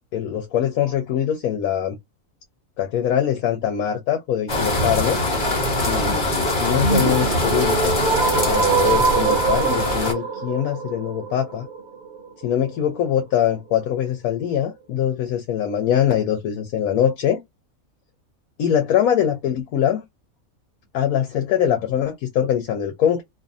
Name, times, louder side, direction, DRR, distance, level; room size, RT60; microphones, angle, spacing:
voice 1, 0.1-2.0 2.8-5.2 5.8-8.0 8.5-11.7 12.4-17.4 18.6-20.0 20.9-23.2, left 9 dB, 85° left, 1.1 m, -23 dB
sound 1, 4.5-10.1, left 2 dB, 40° left, 1.1 m, -22 dB
sound 2, 6.8-12.8, right 5 dB, 55° right, 0.6 m, -24 dB
2.6 x 2.6 x 2.5 m
omnidirectional pair, 1.5 m